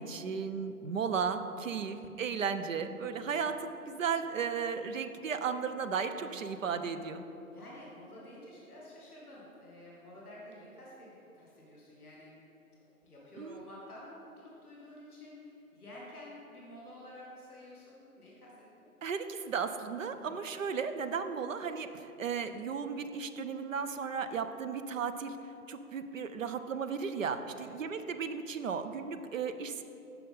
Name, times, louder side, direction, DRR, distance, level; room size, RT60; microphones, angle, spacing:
voice 1, 0.0-7.2 13.4-13.6 19.0-25.4 25.7-29.8, right 6 dB, 60° right, 9 dB, 0.5 m, -35 dB
voice 2, 1.8-2.1 7.5-12.4 12.8-18.9 20.1-20.3 24.1-24.5 27.5-27.7, left 1 dB, ahead, -28 dB, 0.5 m, -51 dB
7.1 x 5.8 x 4.0 m, 2.7 s
figure-of-eight pair, 140°, 45 cm